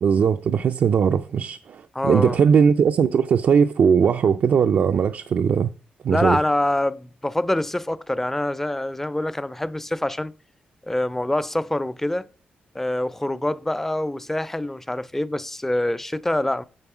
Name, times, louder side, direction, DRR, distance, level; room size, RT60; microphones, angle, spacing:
voice 1, 0.0-5.7 6.0-6.4, right 7 dB, 65° right, 0.4 m, -19 dB
voice 2, 2.0-2.4 6.1-10.3 10.8-12.3 12.7-16.6, left 1 dB, 10° left, 0.4 m, -25 dB
9.1 x 3.7 x 6.0 m
cardioid pair, 90°, 3 cm